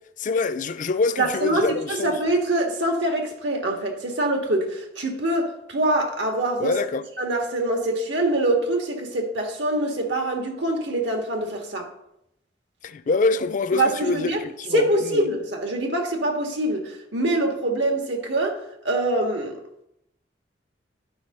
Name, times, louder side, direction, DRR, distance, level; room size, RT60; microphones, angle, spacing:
voice 1, 0.2-2.2 6.6-7.0 12.8-15.3, left 3 dB, 45° left, 0.4 m, -25 dB
voice 2, 1.2-6.7 7.2-11.9 13.7-14.4 14.7-19.6, right 1 dB, 85° right, 1.7 m, -24 dB
11.0 x 3.8 x 5.4 m
head